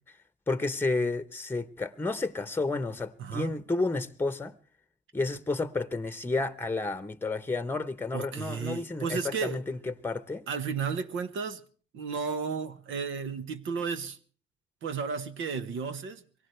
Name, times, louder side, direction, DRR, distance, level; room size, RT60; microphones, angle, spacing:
voice 1, 0.5-4.5 5.1-10.4, left 3 dB, 10° left, 0.9 m, -31 dB
voice 2, 3.2-3.5 8.1-9.6 10.5-11.6 11.9-14.2 14.8-16.2, right 5 dB, 80° right, 1.3 m, -33 dB
23.5 x 17.5 x 3.3 m
cardioid pair, 90°, 20 cm